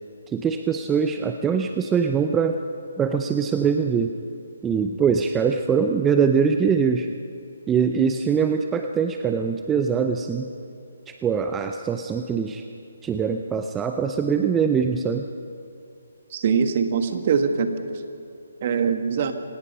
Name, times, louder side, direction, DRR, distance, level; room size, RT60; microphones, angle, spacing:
voice 1, 0.3-2.6 3.0-4.1 4.6-7.1 7.7-10.5 11.1-12.6 13.0-15.3, right 6 dB, 10° right, 6 dB, 0.7 m, -23 dB
voice 2, 16.3-17.8 18.6-19.3, right 6 dB, 40° right, 7 dB, 1.7 m, -22 dB
25.0 x 19.5 x 5.5 m, 2.5 s
figure-of-eight pair, 145°, 0 cm